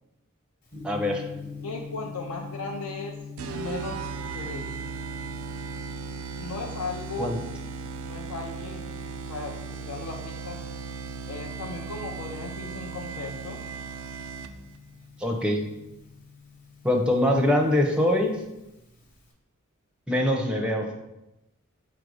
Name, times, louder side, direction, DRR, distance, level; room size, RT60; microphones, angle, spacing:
Gong, 0.7-19.3, left 5 dB, 40° left, 0.9 m, -44 dB
voice 1, 0.8-1.2 7.2-7.4 15.2-15.6 16.8-18.3 20.1-20.9, left 1 dB, 5° right, 1 dB, 0.4 m, -23 dB
voice 2, 1.6-3.1 3.5-4.1 4.3-4.7 6.4-7.3 8.1-8.9 9.2-10.6 11.3-13.6, left 3 dB, 85° left, 1 dB, 0.5 m, -36 dB
sound 1, 3.4-14.8, right 5 dB, 70° right, 0.3 m, -37 dB
4.3 x 2.5 x 4.7 m, 0.94 s
head